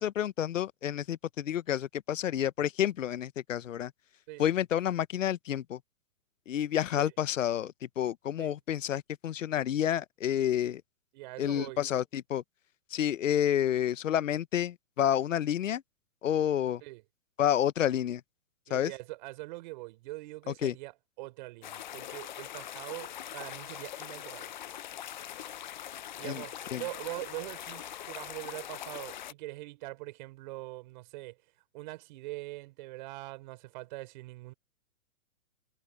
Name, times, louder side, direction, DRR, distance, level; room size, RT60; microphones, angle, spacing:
voice 1, 0.0-3.9 4.4-5.8 6.5-10.8 11.4-12.4 12.9-15.8 16.2-16.8 17.4-18.2 18.7-18.9 20.5-20.7 26.2-26.4 26.7-26.8, left 10 dB, 65° left, 1.0 m, -29 dB
voice 2, 11.1-11.8 16.8-17.0 18.7-24.5 26.2-31.4 31.7-34.5, right 21 dB, 35° right, 4.4 m, -43 dB
sound 1, 21.6-29.3, left 11 dB, 35° left, 0.5 m, -42 dB
hypercardioid pair, 160°, 41 cm